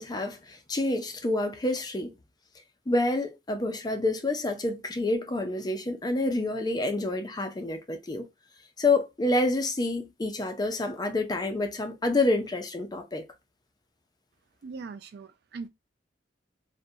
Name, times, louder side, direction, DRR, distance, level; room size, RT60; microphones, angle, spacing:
voice 1, 0.0-2.1 2.9-8.3 8.8-13.2, left 2 dB, 25° left, 0.5 m, -28 dB
voice 2, 14.6-15.7, right 4 dB, 65° right, 0.4 m, -40 dB
2.5 x 2.1 x 2.6 m
head